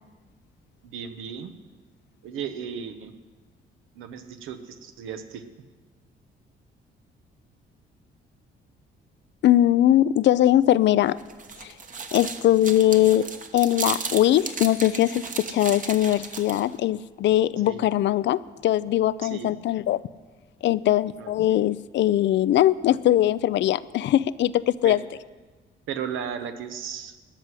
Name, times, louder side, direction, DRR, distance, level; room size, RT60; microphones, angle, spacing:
voice 1, 0.9-1.5 2.2-3.1 4.0-5.4 17.6-17.9 19.2-19.6 21.2-21.7 24.8-25.0 25.9-27.2, right 7 dB, 90° right, 8 dB, 1.0 m, -35 dB
voice 2, 9.4-11.2 11.6-11.7 12.1-20.0 20.6-25.0, left 13 dB, 65° left, 18 dB, 0.4 m, -21 dB
sound 1, 11.1-16.8, right 5 dB, 40° right, 1.1 m, -35 dB
13.5 x 6.2 x 9.7 m, 1.3 s
cardioid pair, 90°, 20 cm